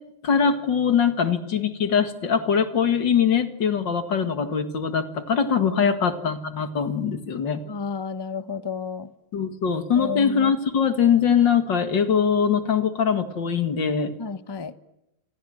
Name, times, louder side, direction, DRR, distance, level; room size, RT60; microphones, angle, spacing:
voice 1, 0.2-7.6 9.3-14.1, left 7 dB, 60° left, 8 dB, 2.6 m, -22 dB
voice 2, 7.6-9.1 9.9-10.5 14.2-14.7, left 5 dB, 20° left, 11 dB, 0.6 m, -31 dB
29.0 x 26.5 x 7.8 m, 0.89 s
omnidirectional pair, 2.2 m